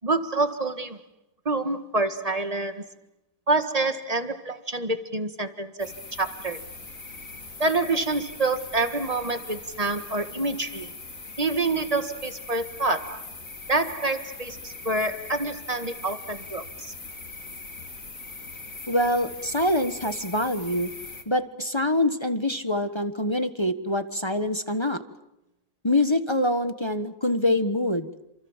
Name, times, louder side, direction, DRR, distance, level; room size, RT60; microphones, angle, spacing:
voice 1, 0.0-1.0 1.5-2.9 3.5-6.6 7.6-10.9 11.4-13.3 13.7-16.9, right 2 dB, 25° right, 9 dB, 1.8 m, -27 dB
sound 1, 5.8-21.2, left 3 dB, 55° left, 3.4 m, -41 dB
voice 2, 18.9-20.9 21.3-25.0 25.8-28.1, left 1 dB, 20° left, 9 dB, 1.3 m, -25 dB
28.5 x 27.5 x 7.4 m, 0.89 s
omnidirectional pair, 1.7 m